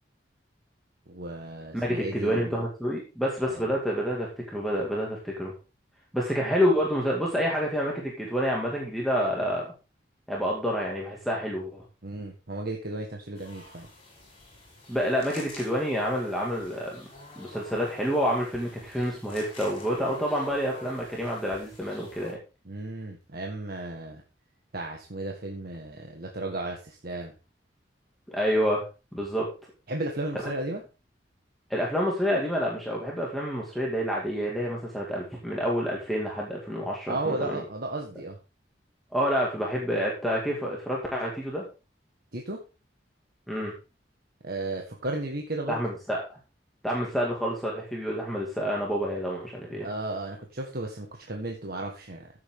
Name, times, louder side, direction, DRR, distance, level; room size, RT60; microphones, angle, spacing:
voice 1, 1.1-2.6 3.5-3.6 12.0-13.9 22.6-24.2 24.7-27.3 29.9-30.8 37.1-38.4 42.3-42.6 44.4-45.8 49.8-52.3, right 2 dB, 55° right, 1 dB, 1.6 m, -34 dB
voice 2, 1.7-5.5 6.1-9.7 10.3-11.8 14.9-17.1 17.4-22.4 28.3-28.9 29.1-29.5 30.4-30.5 31.7-37.6 39.1-41.6 43.5-43.7 45.7-46.4 46.8-49.9, equal, ahead, -3 dB, 2.2 m, -28 dB
sound 1, 13.4-22.3, left 2 dB, 35° left, 5.7 m, -48 dB
14.0 x 7.6 x 3.7 m, 0.32 s
head